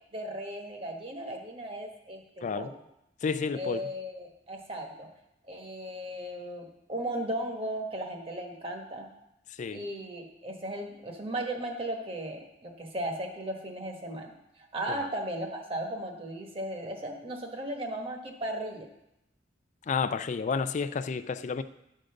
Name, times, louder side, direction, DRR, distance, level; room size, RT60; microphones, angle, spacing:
voice 1, 0.1-2.8 3.5-5.1 5.5-9.1 9.7-14.3 14.7-18.9, right 1 dB, 30° right, 2 dB, 1.2 m, -36 dB
voice 2, 3.2-3.8 9.5-9.8 14.9-15.1 19.9-21.6, left 5 dB, 40° left, 12 dB, 0.4 m, -31 dB
11.0 x 3.9 x 6.5 m, 0.86 s
head